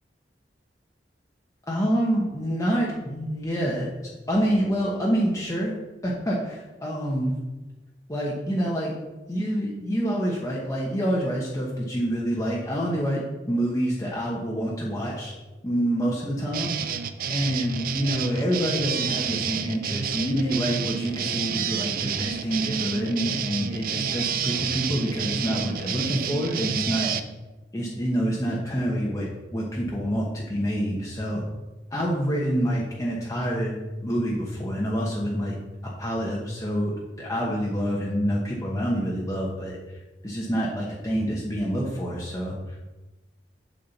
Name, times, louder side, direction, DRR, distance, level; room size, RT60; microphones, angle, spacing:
voice 1, 1.7-3.9 4.3-5.7 6.0-7.3 8.1-8.9 9.3-15.3 15.6-17.0 17.3-27.1 27.7-31.4 31.9-35.6 36.0-36.9 37.2-42.8, equal, 20° left, -4 dB, 1.1 m, -27 dB
sound 1, 16.5-27.2, right 7 dB, 55° right, 0.5 m, -29 dB
7.6 x 6.8 x 4.1 m, 1.1 s
head